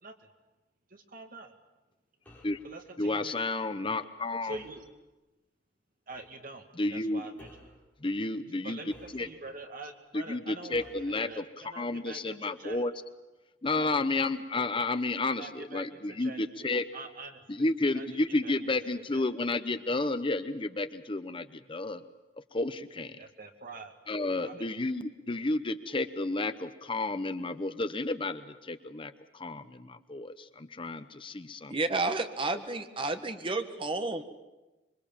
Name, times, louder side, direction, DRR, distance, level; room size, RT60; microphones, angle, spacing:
voice 1, 0.9-1.5 2.6-3.5 4.4-4.9 6.1-7.5 8.6-12.8 13.8-14.4 15.4-16.7 16.9-19.3 23.2-24.7, right 2 dB, 55° right, 4 dB, 2.3 m, -46 dB
sound 1, 2.2-2.6 4.5-4.9 6.1-6.3 7.4-7.8 8.9-9.6 10.7-11.1, left 1 dB, 10° left, 7.3 m, -54 dB
voice 2, 3.0-4.6 6.8-7.2 8.0-8.8 9.1-9.3 10.1-11.4 11.7-12.9 13.6-16.8 17.5-22.0 22.5-23.2 24.1-31.8, left 2 dB, 30° left, 11 dB, 0.8 m, -31 dB
voice 3, 31.7-34.2, right 3 dB, 30° right, 7 dB, 1.5 m, -31 dB
26.0 x 23.5 x 7.3 m, 1.1 s
head